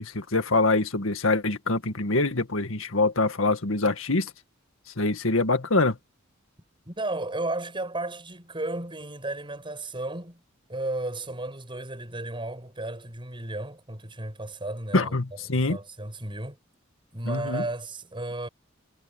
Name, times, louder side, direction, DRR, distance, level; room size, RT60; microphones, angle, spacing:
voice 1, 0.0-4.3 5.0-6.0 14.9-15.8 17.2-17.6, left 2 dB, 90° left, 1.9 m, -24 dB
voice 2, 6.9-10.4 10.7-15.2 15.5-16.6 17.1-18.5, right 2 dB, 25° right, 7.7 m, -34 dB
head